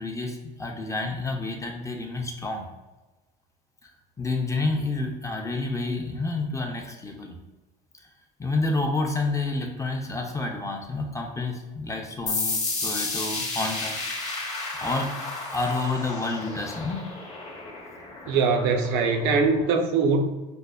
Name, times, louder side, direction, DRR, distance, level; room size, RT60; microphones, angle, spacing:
voice 1, 0.0-2.7 4.2-7.4 8.4-14.0 14.8-15.2 15.5-17.1, left 3 dB, 15° left, 2 dB, 0.5 m, -29 dB
sound 1, 12.3-19.6, left 3 dB, 35° left, 0.9 m, -32 dB
voice 2, 18.3-20.2, right 4 dB, 80° right, 4 dB, 0.5 m, -22 dB
5.2 x 2.0 x 2.2 m, 1.1 s
supercardioid pair, 90°, 21 cm